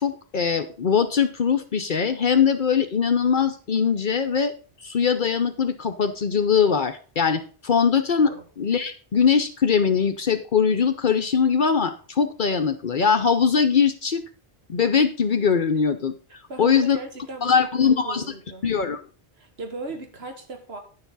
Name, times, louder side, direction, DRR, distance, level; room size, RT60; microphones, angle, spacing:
voice 1, 0.0-4.5 4.8-8.3 8.6-14.2 14.7-16.2 16.6-17.0 17.4-18.2 18.6-19.0, left 6 dB, 55° left, 7 dB, 0.9 m, -21 dB
voice 2, 16.5-18.7 19.4-20.8, right 2 dB, 85° right, 5 dB, 1.8 m, -37 dB
10.5 x 6.9 x 4.0 m, 0.39 s
omnidirectional pair, 1.0 m